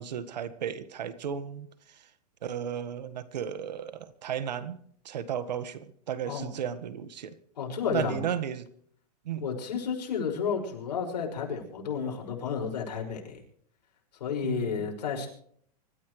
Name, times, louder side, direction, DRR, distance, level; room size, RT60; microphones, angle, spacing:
voice 1, 0.0-2.1 2.4-4.8 5.0-7.4 7.9-8.7 9.2-9.5 14.4-14.8, right 9 dB, 85° right, 14 dB, 1.7 m, -34 dB
voice 2, 7.6-8.2 9.4-13.4 14.2-15.3, left 6 dB, 80° left, 1 dB, 6.1 m, -32 dB
25.0 x 14.0 x 3.3 m, 0.62 s
hypercardioid pair, 140°, 21 cm